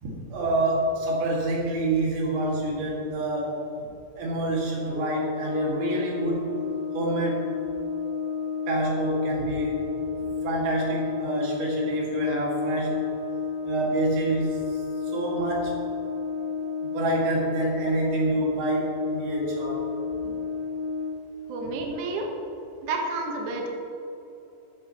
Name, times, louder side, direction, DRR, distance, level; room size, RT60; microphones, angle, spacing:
voice 1, 0.0-3.6 4.2-6.5 6.9-7.5 8.7-9.8 10.4-13.0 13.7-15.7 16.8-19.8, right 2 dB, 65° right, -3 dB, 4.3 m, -27 dB
Brass instrument, 4.9-21.3, left 5 dB, 80° left, 2.4 m, -31 dB
voice 2, 21.5-22.3 22.8-23.7, right 3 dB, 90° right, 1 dB, 1.7 m, -30 dB
13.5 x 12.5 x 3.1 m, 3.0 s
omnidirectional pair, 5.8 m